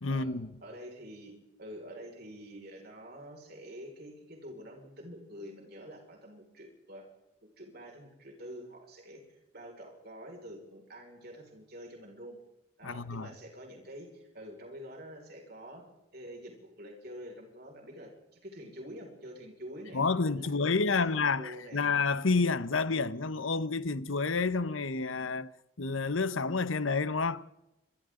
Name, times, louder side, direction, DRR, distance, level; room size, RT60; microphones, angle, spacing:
voice 1, 0.0-0.5 12.8-13.3 19.9-25.5 25.8-27.4, left 4 dB, 80° left, 1.0 m, -29 dB
voice 2, 0.6-1.3 1.6-7.1 7.6-12.4 12.8-15.8 16.1-18.1 18.4-20.0 20.4-21.9, equal, 50° right, 5.6 m, -47 dB
27.5 x 24.0 x 3.9 m
head